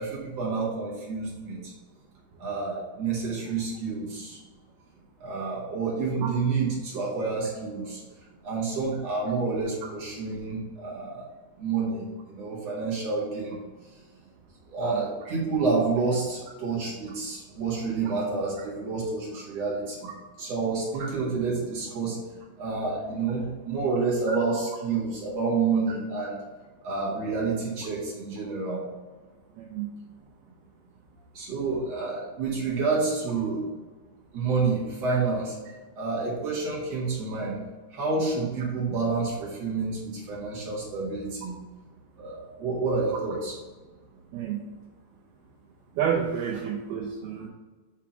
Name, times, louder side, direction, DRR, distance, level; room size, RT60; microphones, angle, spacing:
voice 1, 0.0-1.6 2.4-4.4 5.2-8.0 8.4-11.2 11.6-12.0 12.3-13.6 14.7-19.9 20.4-22.2 22.6-26.4 26.8-28.8 31.4-33.6 34.3-35.5 36.0-37.6 37.9-41.5 42.2-43.6, right 4 dB, 55° right, -6 dB, 1.9 m, -29 dB
voice 2, 29.6-29.9 44.3-44.6 46.0-47.5, right 8 dB, 80° right, -3 dB, 2.3 m, -29 dB
7.2 x 3.7 x 5.9 m, 1.3 s
omnidirectional pair, 5.4 m